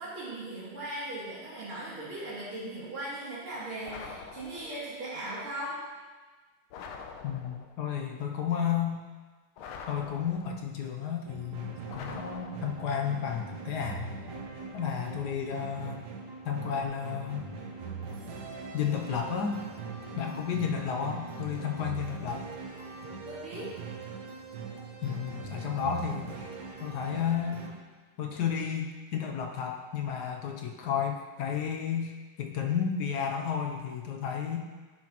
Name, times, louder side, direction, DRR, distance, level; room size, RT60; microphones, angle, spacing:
voice 1, 0.0-5.8 23.2-23.7, right 1 dB, 90° right, -8 dB, 2.7 m, -38 dB
sound 1, 3.8-4.9 6.7-7.8 9.6-10.7 11.9-13.0, left 5 dB, 85° left, 1.5 m, -45 dB
voice 2, 7.2-9.0 9.9-14.1 14.7-16.1 16.4-17.4 18.7-19.6 20.2-22.5 25.0-26.5 26.8-27.7 28.2-32.1 32.4-34.6, left 8 dB, 70° left, 2 dB, 1.0 m, -32 dB
sound 2, 11.2-27.7, right 4 dB, 60° right, 1.3 m, -41 dB
10.5 x 5.9 x 2.9 m, 1.3 s
omnidirectional pair, 2.3 m